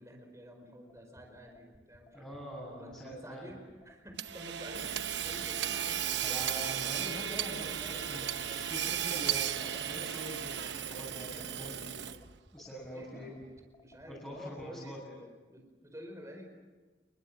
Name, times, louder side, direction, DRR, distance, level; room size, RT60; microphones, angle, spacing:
voice 1, 0.0-2.4 2.7-7.2 8.4-8.6 12.9-13.4 13.8-15.0 15.5-16.5, equal, 15° right, 3 dB, 5.1 m, -50 dB
sound 1, 0.9-14.7, left 1 dB, 20° left, 3.0 m, -60 dB
voice 2, 2.1-3.6 6.2-12.2 12.5-13.3 14.1-15.1, equal, 5° left, -7 dB, 7.7 m, -44 dB
Hammer / Sawing, 4.2-12.4, right 10 dB, 70° right, 0.9 m, -35 dB
29.0 x 22.5 x 7.8 m, 1.3 s
head